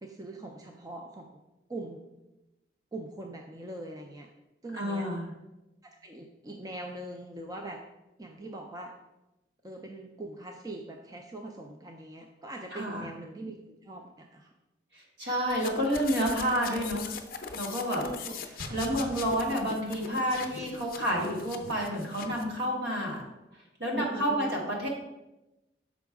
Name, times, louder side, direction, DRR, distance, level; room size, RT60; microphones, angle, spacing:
voice 1, 0.0-1.3 1.7-2.0 2.9-4.3 4.6-5.1 6.0-7.8 8.2-8.9 9.6-14.5 18.0-18.4 20.6-20.7 23.9-24.6, right 2 dB, 20° right, 2 dB, 0.4 m, -41 dB
voice 2, 4.7-5.3 12.7-13.0 14.9-17.1 17.5-18.0 18.7-23.2 23.8-24.9, equal, 65° right, -2 dB, 1.5 m, -29 dB
sound 1, 15.5-22.5, left 5 dB, 50° left, 0.5 m, -41 dB
Explosion, 18.6-20.2, left 1 dB, 40° right, 1.3 m, -44 dB
6.0 x 4.7 x 3.5 m, 0.98 s
head